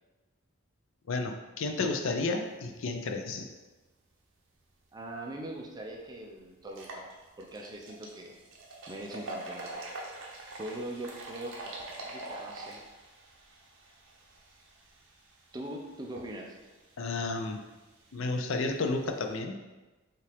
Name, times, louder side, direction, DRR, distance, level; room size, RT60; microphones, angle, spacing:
voice 1, 1.1-3.4 17.0-17.6 18.1-19.6, left 3 dB, 60° left, 5 dB, 0.5 m, -32 dB
voice 2, 4.9-8.4 8.9-9.8 10.6-12.8 15.5-16.6, right 1 dB, 20° right, 0 dB, 0.5 m, -41 dB
sound 1, 5.4-5.5 5.9-6.0 6.6-19.4, right 2 dB, 60° right, 0.7 m, -46 dB
5.4 x 2.5 x 3.4 m, 1.2 s
head